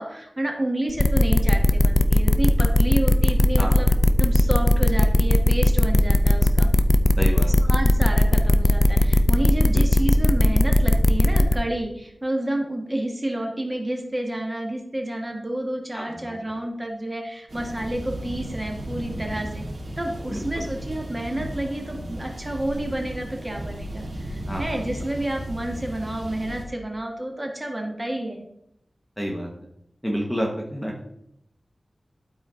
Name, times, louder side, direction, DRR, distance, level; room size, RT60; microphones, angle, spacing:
voice 1, 0.0-3.9 4.2-6.7 7.7-19.6 20.0-28.4, right 1 dB, 20° right, 1 dB, 1.5 m, -30 dB
sound 1, 1.0-11.5, left 1 dB, 30° left, 0.5 m, -17 dB
voice 2, 7.2-7.5 9.7-9.8 15.9-16.3 20.3-20.6 24.5-24.7 29.2-29.5 30.0-31.0, equal, ahead, -1 dB, 1.3 m, -29 dB
sound 2, 17.5-26.6, right 1 dB, 85° right, 2.4 m, -35 dB
12.0 x 4.3 x 3.7 m, 0.76 s
wide cardioid pair, 80°, 0 cm